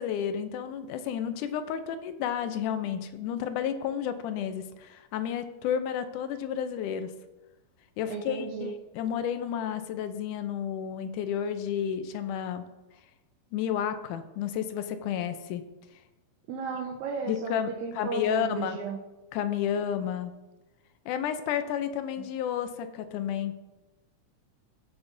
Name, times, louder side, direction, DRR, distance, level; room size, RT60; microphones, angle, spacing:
voice 1, 0.0-7.1 8.0-12.7 13.5-15.6 17.3-18.8 19.3-20.3 21.1-23.5, left 9 dB, 80° left, 10 dB, 2.1 m, -31 dB
voice 2, 8.1-8.7 16.5-19.0, right 5 dB, 75° right, -1 dB, 2.0 m, -34 dB
17.0 x 7.9 x 2.6 m, 1.1 s
omnidirectional pair, 3.6 m